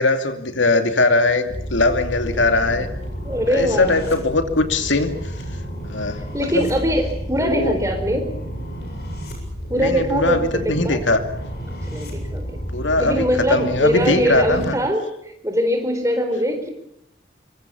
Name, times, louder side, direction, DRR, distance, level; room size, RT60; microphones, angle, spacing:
voice 1, 0.0-2.9 3.5-5.2 5.8-6.7 7.4-7.8 9.8-11.2 12.7-14.8, left 2 dB, 90° left, 8 dB, 2.6 m, -20 dB
sound 1, 1.5-14.7, equal, 60° left, 7.7 m, -31 dB
voice 2, 2.3-3.0 3.2-4.1 6.3-8.3 9.7-11.0 11.7-12.4 13.0-16.7, equal, 15° right, 5 dB, 4.4 m, -22 dB
25.5 x 23.5 x 7.1 m, 0.76 s
head